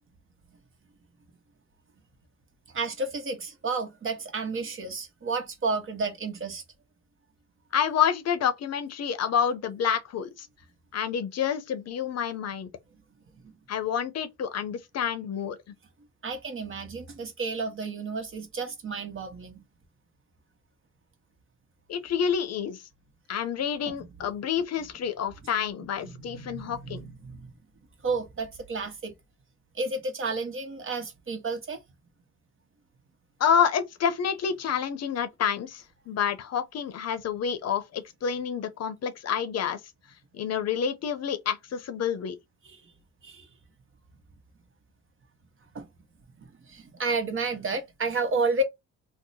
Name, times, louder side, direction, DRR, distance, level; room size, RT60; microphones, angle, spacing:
voice 1, 2.7-6.6 13.4-13.5 16.2-19.6 23.9-24.0 26.0-27.5 28.0-29.1 29.7-31.8 42.6-42.9 43.2-43.5 45.7-45.9 46.4-48.6, right 3 dB, 45° right, 1.0 m, -31 dB
voice 2, 7.7-10.5 10.9-12.7 13.7-15.6 21.9-22.8 23.3-27.0 33.4-39.8 40.3-42.4, left 8 dB, 60° left, 0.6 m, -28 dB
2.8 x 2.1 x 4.0 m
cardioid pair, 90°, 30 cm